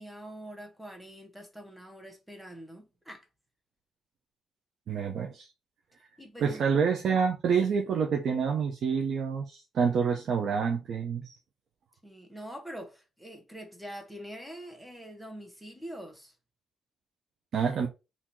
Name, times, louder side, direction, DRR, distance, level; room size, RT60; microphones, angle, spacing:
voice 1, 0.0-3.3 6.2-6.6 12.0-16.3, equal, ahead, 1.4 m, -44 dB
voice 2, 4.9-5.5 6.4-11.4 17.5-17.9, right 6 dB, 65° right, 0.8 m, -27 dB
3.8 x 2.8 x 4.4 m
cardioid pair, 90°, 0 cm